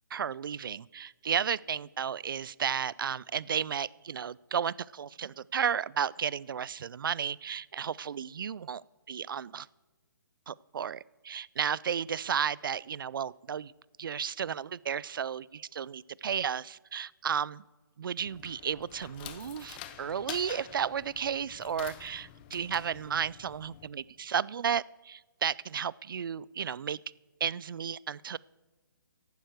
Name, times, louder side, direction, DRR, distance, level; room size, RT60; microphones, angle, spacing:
voice 1, 0.1-8.8 9.1-9.7 10.5-13.7 14.0-17.6 18.0-27.0 27.4-28.4, right 8 dB, 75° right, 23 dB, 0.4 m, -33 dB
sound 1, 18.2-23.9, left 11 dB, 25° left, 0.7 m, -47 dB
14.0 x 11.5 x 4.6 m, 1.3 s
hypercardioid pair, 155°, 11 cm